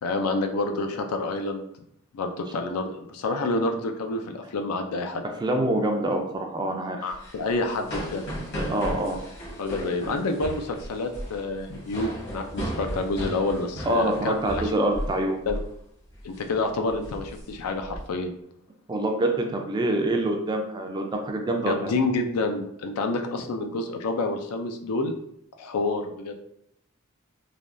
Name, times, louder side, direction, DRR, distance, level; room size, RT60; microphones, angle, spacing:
voice 1, 0.0-1.6 2.1-5.2 7.0-8.2 9.6-14.6 15.5-15.6 16.2-18.3 21.7-25.1 25.6-26.3, left 2 dB, 85° left, 5 dB, 0.4 m, -28 dB
voice 2, 5.4-7.1 8.7-9.2 13.8-15.4 18.9-21.9, right 1 dB, 20° right, 3 dB, 0.3 m, -25 dB
sound 1, 7.1-15.2 15.5-15.7 16.1-16.4 16.9-18.0, equal, 50° left, 1.0 m, -35 dB
3.3 x 2.2 x 2.5 m, 0.73 s
head